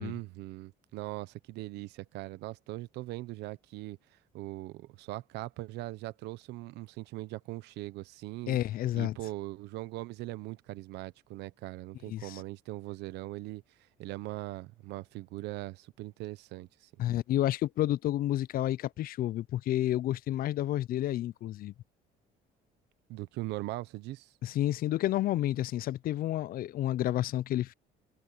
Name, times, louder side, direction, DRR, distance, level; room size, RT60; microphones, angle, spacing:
voice 1, 0.0-4.0 4.3-8.6 8.9-13.6 14.0-16.9 23.1-24.3, right 18 dB, 85° right, 1.0 m, -40 dB
voice 2, 8.5-9.2 12.1-12.4 17.0-21.7 24.4-27.7, left 13 dB, 60° left, 0.5 m, -30 dB
cardioid pair, 110°, 17 cm